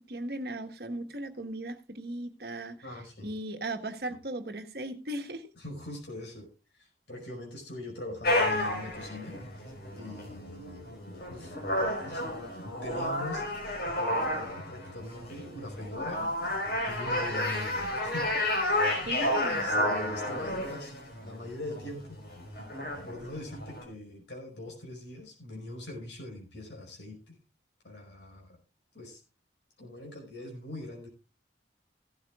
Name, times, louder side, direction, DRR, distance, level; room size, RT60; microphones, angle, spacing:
voice 1, 0.1-5.5 19.0-19.7, right 1 dB, 55° right, 7 dB, 1.4 m, -37 dB
voice 2, 2.8-3.3 5.6-6.5 6.8-11.5 12.0-13.4 14.0-16.3 16.9-18.7 19.5-20.9 21.2-22.2 23.0-27.4 27.8-28.6 28.9-29.2 29.8-31.1, left 1 dB, 75° left, 0 dB, 5.2 m, -42 dB
sound 1, 8.2-23.8, left 1 dB, 55° left, 4.5 m, -31 dB
16.5 x 12.5 x 2.4 m, 0.31 s
head